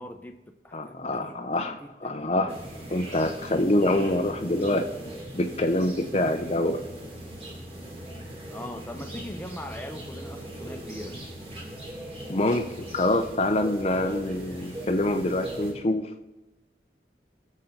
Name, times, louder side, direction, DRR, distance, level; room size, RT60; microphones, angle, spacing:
voice 1, 0.0-2.6 8.5-11.2, left 1 dB, 10° left, 4 dB, 0.9 m, -41 dB
voice 2, 0.7-2.5 2.9-4.9 5.3-6.8 12.3-16.1, left 1 dB, 35° left, 5 dB, 0.7 m, -26 dB
sound 1, 2.5-15.7, right 1 dB, 35° right, 2.7 m, -39 dB
21.0 x 7.4 x 3.9 m, 1.0 s
head